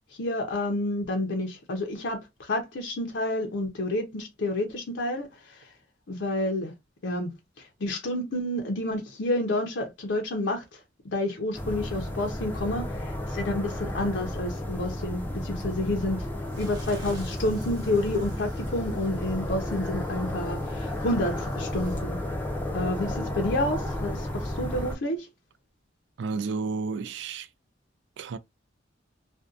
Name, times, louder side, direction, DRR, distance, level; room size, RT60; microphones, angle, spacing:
voice 1, 0.2-5.7 6.1-6.7 7.0-10.8 11.1-16.3 16.6-22.2 22.7-25.3, left 1 dB, 65° left, 0.6 m, -29 dB
sound 1, 11.5-25.0, left 1 dB, 10° left, 0.5 m, -32 dB
sound 2, 16.5-22.0, equal, 25° right, 1.0 m, -46 dB
voice 2, 26.2-27.5 28.2-28.4, right 4 dB, 65° right, 0.3 m, -31 dB
2.6 x 2.2 x 2.3 m
head